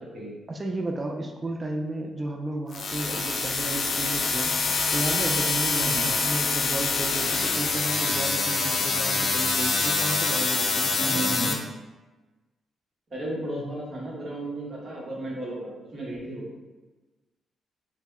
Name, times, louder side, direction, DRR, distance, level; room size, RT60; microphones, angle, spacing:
voice 1, 0.5-4.5 4.9-11.6, right 2 dB, 30° right, 2 dB, 0.4 m, -33 dB
sound 1, 2.7-11.5, left 4 dB, 60° left, 0.4 m, -25 dB
voice 2, 11.0-11.6 13.1-16.5, right 1 dB, 50° right, -4 dB, 1.0 m, -33 dB
2.1 x 2.1 x 3.5 m, 1.2 s
cardioid pair, 70°, 0 cm